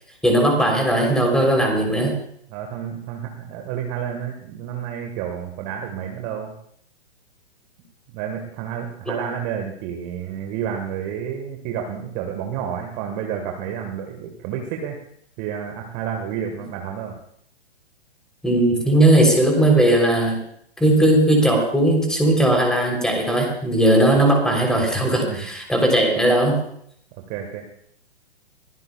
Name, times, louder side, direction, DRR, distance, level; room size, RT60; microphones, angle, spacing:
voice 1, 0.2-2.1 18.4-20.4 20.8-26.6, right 1 dB, ahead, 1 dB, 3.4 m, -18 dB
voice 2, 2.5-6.5 8.1-15.0 15.4-17.1 25.1-25.4 27.3-27.7, right 8 dB, 25° right, 3 dB, 1.5 m, -30 dB
23.0 x 15.5 x 2.3 m, 0.68 s
figure-of-eight pair, 120°, 32 cm